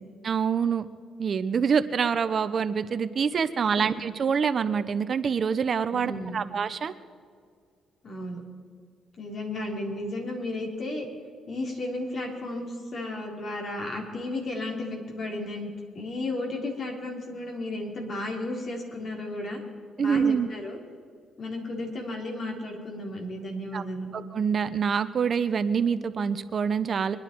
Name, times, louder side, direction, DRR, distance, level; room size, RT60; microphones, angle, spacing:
voice 1, 0.2-0.9 1.2-6.9 20.0-20.5 23.7-23.8 24.1-27.2, right 6 dB, 50° right, 12 dB, 0.7 m, -26 dB
voice 2, 5.9-6.5 8.0-8.4 9.2-11.1 11.5-19.6 20.0-20.8 21.4-24.1, left 2 dB, 50° left, 1 dB, 3.6 m, -34 dB
23.0 x 10.5 x 4.6 m, 2.1 s
cardioid pair, 90°, 0 cm